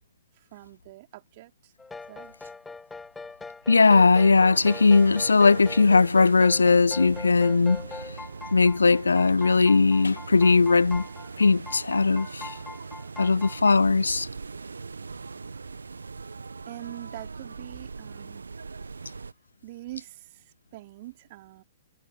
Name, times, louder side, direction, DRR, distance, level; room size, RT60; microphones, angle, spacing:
voice 1, 0.5-1.7 2.1-2.3 16.7-18.4 19.6-21.6, right 18 dB, 45° right, 4.6 m, -43 dB
sound 1, 1.8-13.7, left 4 dB, 10° left, 1.7 m, -41 dB
voice 2, 3.7-7.9 8.5-11.0 11.4-12.5 13.2-14.3, left 4 dB, 80° left, 0.5 m, -19 dB
sound 2, 4.5-19.3, right 4 dB, 80° right, 1.3 m, -40 dB
figure-of-eight pair, 120°, 0 cm